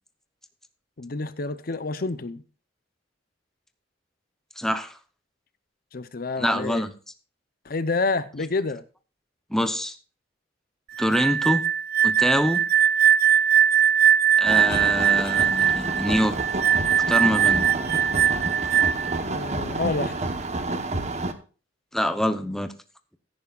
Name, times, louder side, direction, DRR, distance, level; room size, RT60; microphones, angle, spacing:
voice 1, 1.0-2.4 5.9-6.9 7.6-8.8 19.3-20.2, left 3 dB, 50° left, 0.7 m, -28 dB
voice 2, 4.6-5.0 6.4-6.9 9.5-10.0 11.0-11.6 12.0-12.6 14.4-16.4 16.9-17.6 21.9-22.7, equal, 5° left, 0.8 m, -25 dB
sound 1, 11.0-19.2, right 8 dB, 55° right, 0.5 m, -21 dB
sound 2, 14.4-21.3, right 2 dB, 35° right, 1.0 m, -29 dB
16.5 x 9.8 x 2.4 m
head